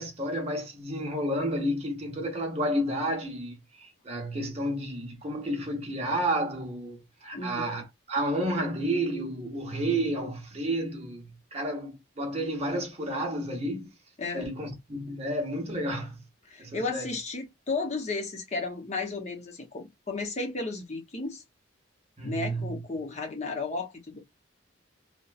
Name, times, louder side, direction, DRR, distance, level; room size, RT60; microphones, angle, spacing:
voice 1, 0.0-11.3 11.5-13.9 14.3-16.2 16.6-17.1 22.2-22.8, right 1 dB, 30° right, 0.8 m, -31 dB
voice 2, 7.3-7.7 14.2-14.5 16.5-21.4 22.2-24.2, left 3 dB, 35° left, 0.7 m, -33 dB
2.8 x 2.1 x 2.3 m
head